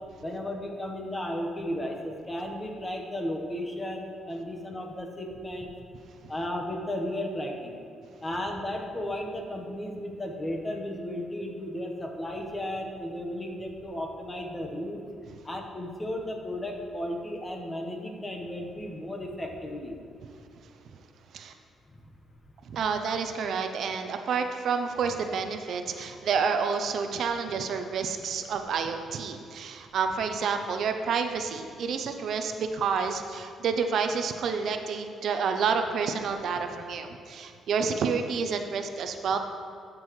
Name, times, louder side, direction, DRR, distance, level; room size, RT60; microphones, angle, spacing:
voice 1, 0.2-5.7 6.3-7.8 8.2-15.0 15.4-20.0 22.7-22.8, left 1 dB, 20° left, 1 dB, 1.2 m, -34 dB
voice 2, 22.7-39.4, right 5 dB, 65° right, 6 dB, 0.6 m, -29 dB
13.0 x 6.1 x 3.2 m, 2.4 s
cardioid pair, 90°, 0 cm